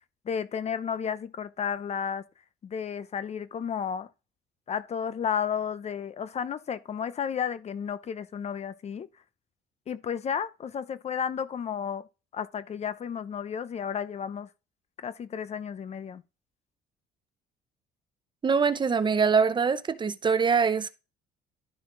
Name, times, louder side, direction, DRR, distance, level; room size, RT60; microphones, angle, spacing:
voice 1, 0.3-2.2 2.6-4.1 4.7-9.1 9.9-12.0 12.3-14.5 15.0-16.2, left 7 dB, 40° left, 0.7 m, -32 dB
voice 2, 18.4-20.9, right 5 dB, 25° right, 0.7 m, -24 dB
12.0 x 5.8 x 3.8 m
cardioid pair, 110°, 17 cm